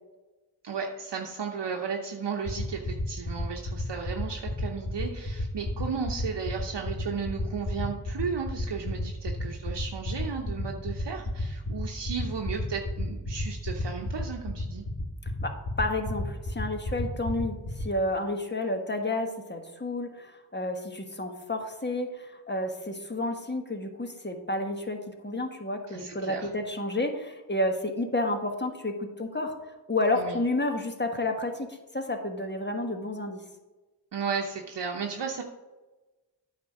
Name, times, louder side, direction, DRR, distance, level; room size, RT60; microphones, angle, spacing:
voice 1, 0.6-14.8 25.9-26.5 30.1-30.4 34.1-35.4, right 6 dB, 75° right, 1 dB, 0.8 m, -34 dB
sound 1, 2.4-17.8, left 2 dB, 50° left, 2.9 m, -31 dB
voice 2, 15.4-29.6 29.9-33.4, left 2 dB, 25° left, 4 dB, 1.4 m, -30 dB
9.4 x 4.4 x 6.4 m, 1.1 s
cardioid pair, 45°, 42 cm